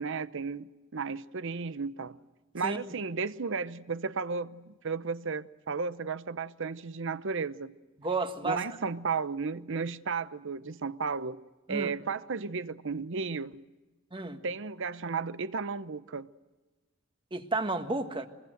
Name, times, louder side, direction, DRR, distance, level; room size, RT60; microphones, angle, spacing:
voice 1, 0.0-2.2 2.5-7.7 8.4-11.4 11.7-13.6 14.4-16.3, right 5 dB, 65° right, 0.8 m, -34 dB
voice 2, 2.6-2.9 8.0-8.6 11.7-11.9 14.1-14.4 17.3-18.3, right 2 dB, 25° right, 1.6 m, -32 dB
25.0 x 22.5 x 7.9 m
head